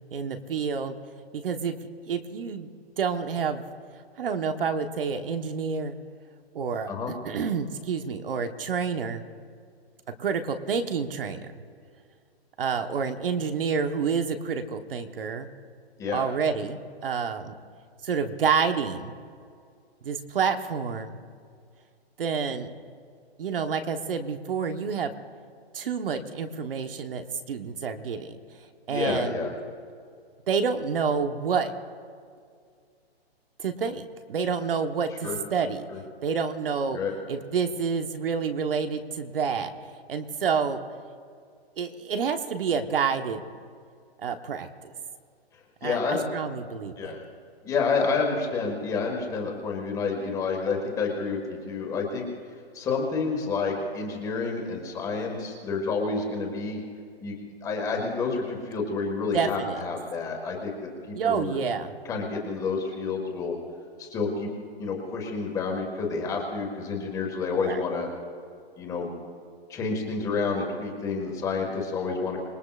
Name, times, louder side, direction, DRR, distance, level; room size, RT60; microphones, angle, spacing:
voice 1, 0.1-1.0 1.3-1.8 2.0-2.7 3.0-3.7 4.2-5.9 6.5-6.9 7.2-9.2 10.2-11.4 12.6-15.5 16.1-17.5 18.0-19.1 20.0-21.1 22.2-22.7 23.4-25.1 25.7-28.4 28.9-29.4 30.5-31.7 33.6-35.8 36.2-37.0 37.3-39.7 40.1-40.8 41.8-43.4 44.2-44.9 45.8-47.1 59.3-59.8 61.2-61.9 67.5-67.8, right 6 dB, 60° right, 7 dB, 1.2 m, -28 dB
voice 2, 28.9-29.5 35.2-35.3 35.9-36.0 36.9-37.1 45.8-46.2 47.0-47.2 47.6-52.2 52.7-56.8 57.2-57.4 57.6-61.6 62.1-63.5 64.0-64.5 64.8-68.1 68.8-69.1 69.7-72.4, left 4 dB, 10° left, 0 dB, 1.7 m, -29 dB
26.5 x 19.5 x 2.5 m, 2.2 s
hypercardioid pair, 165°, 31 cm